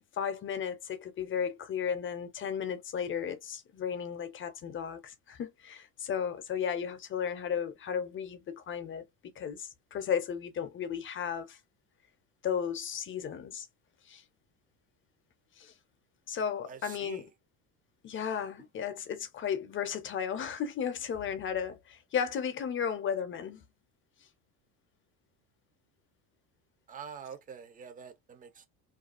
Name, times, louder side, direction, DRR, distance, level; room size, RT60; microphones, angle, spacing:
voice 1, 0.1-9.0 9.4-11.6 12.4-13.7 14.1-14.2 15.6-15.7 16.3-17.3 18.0-23.7, left 7 dB, 30° left, 0.6 m, -34 dB
voice 2, 16.7-17.3 26.9-28.7, right 7 dB, 20° right, 0.5 m, -46 dB
2.4 x 2.3 x 2.4 m
supercardioid pair, 95°, 39 cm